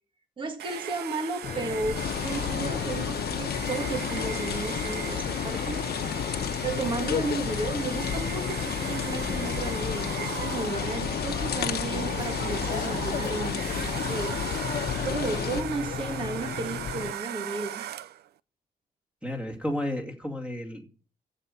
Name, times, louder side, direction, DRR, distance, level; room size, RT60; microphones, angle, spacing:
voice 1, 0.4-5.9 6.2-14.4 15.0-17.9, right 3 dB, 30° right, 5 dB, 1.9 m, -34 dB
Domestic sounds home sounds, 0.6-18.3, right 12 dB, 85° right, 0.6 m, -38 dB
sound 1, 1.4-17.1, left 8 dB, 50° left, 0.7 m, -35 dB
sound 2, 1.9-15.6, left 9 dB, 80° left, 1.2 m, -32 dB
voice 2, 19.2-20.9, left 1 dB, 5° right, 3 dB, 2.5 m, -32 dB
15.0 x 5.6 x 8.6 m, 0.40 s
wide cardioid pair, 165°, 16 cm